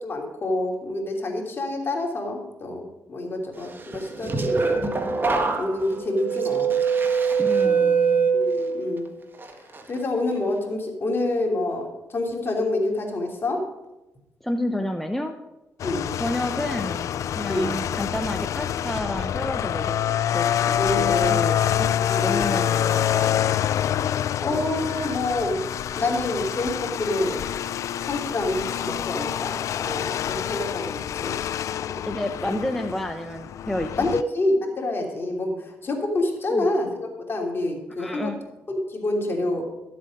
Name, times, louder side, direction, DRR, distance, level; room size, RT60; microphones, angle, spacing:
voice 1, 0.0-4.8 5.6-6.7 7.6-7.8 8.3-9.1 9.9-13.6 15.8-16.1 17.5-17.8 20.8-21.4 21.7-22.6 24.4-25.6 25.9-27.4 28.0-31.3 34.0-38.3 38.7-39.7, left 2 dB, 40° left, 1 dB, 2.9 m, -27 dB
sound 1, 3.9-9.0 9.4-9.8, right 5 dB, 40° right, 1.5 m, -23 dB
voice 2, 7.4-8.3 14.4-15.4 16.2-20.0 20.3-21.6 22.2-23.4 32.1-34.1 36.5-36.7 38.0-38.4, left 1 dB, 5° left, 5 dB, 0.8 m, -30 dB
sound 2, 15.8-34.2, left 10 dB, 70° left, 0.3 m, -26 dB
13.0 x 7.7 x 5.3 m, 1.0 s
cardioid pair, 75°, 6 cm